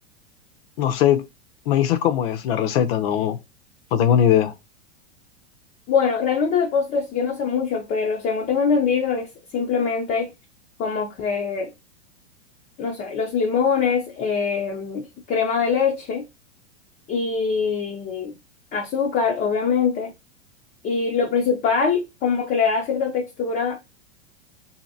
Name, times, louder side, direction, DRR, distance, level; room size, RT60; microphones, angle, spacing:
voice 1, 0.8-1.2 1.7-3.4 3.9-4.5, left 10 dB, 60° left, 0.7 m, -20 dB
voice 2, 5.9-10.3 10.8-11.7 12.8-16.2 17.1-18.3 18.7-20.1 20.8-23.8, left 5 dB, 25° left, 0.4 m, -23 dB
2.7 x 2.7 x 2.6 m
hypercardioid pair, 110°, 34 cm